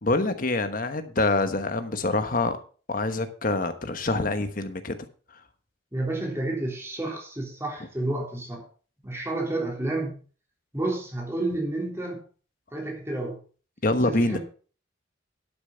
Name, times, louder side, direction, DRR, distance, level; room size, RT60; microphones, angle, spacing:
voice 1, 0.0-2.6 2.9-5.0 13.8-14.4, left 2 dB, 45° left, 9 dB, 1.2 m, -25 dB
voice 2, 5.9-8.6 9.0-10.2 10.7-12.2 12.7-13.4 14.0-14.4, right 2 dB, 15° right, -1 dB, 3.4 m, -30 dB
12.0 x 6.9 x 5.5 m, 0.39 s
head